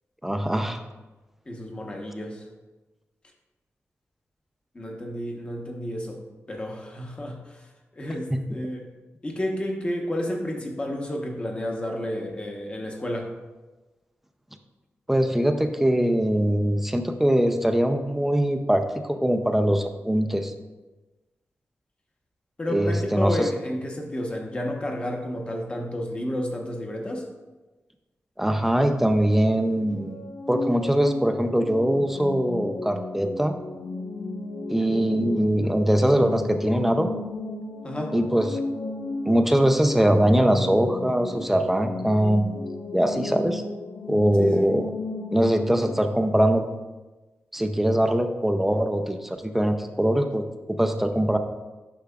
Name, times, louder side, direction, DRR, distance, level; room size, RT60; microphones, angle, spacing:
voice 1, 0.2-0.8 8.3-8.4 15.1-20.5 22.7-23.5 28.4-30.2 30.5-33.5 34.7-37.1 38.1-38.6 39.3-42.6 42.9-43.6 44.1-44.9 45.3-46.7 47.5-51.4, equal, 5° right, 6 dB, 0.4 m, -22 dB
voice 2, 1.5-2.5 4.7-6.2 6.5-7.4 7.9-8.9 9.2-13.3 22.6-27.2 37.8-38.1 44.4-44.7, left 1 dB, 25° left, 1 dB, 0.9 m, -31 dB
sound 1, 29.8-46.0, left 2 dB, 65° left, 0.7 m, -34 dB
10.0 x 6.0 x 2.3 m, 1.2 s
wide cardioid pair, 170°, 5 cm